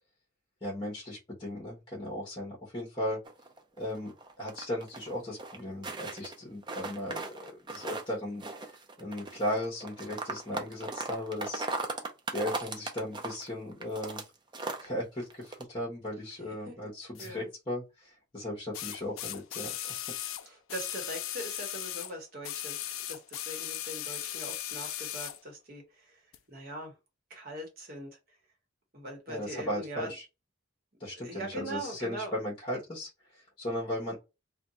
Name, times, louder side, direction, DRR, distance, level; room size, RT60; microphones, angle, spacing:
voice 1, 0.6-3.2 3.8-4.1 4.4-11.7 12.3-14.2 14.8-20.0 29.3-30.2 31.0-34.2, left 1 dB, 25° left, 1.0 m, -37 dB
sound 1, 3.3-5.1 5.4-6.4 6.6-8.1 8.4-14.2 14.5-14.9 15.2-15.6, right 3 dB, 20° right, 0.4 m, -37 dB
sound 2, 17.2-17.3 18.7-22.1 22.4-25.4 26.3-26.4, left 12 dB, 85° left, 0.4 m, -37 dB
voice 2, 20.4-22.8 23.1-26.9 27.3-28.4 28.9-30.1 31.2-32.3, right 1 dB, 45° right, 1.2 m, -41 dB
2.6 x 2.3 x 4.0 m
head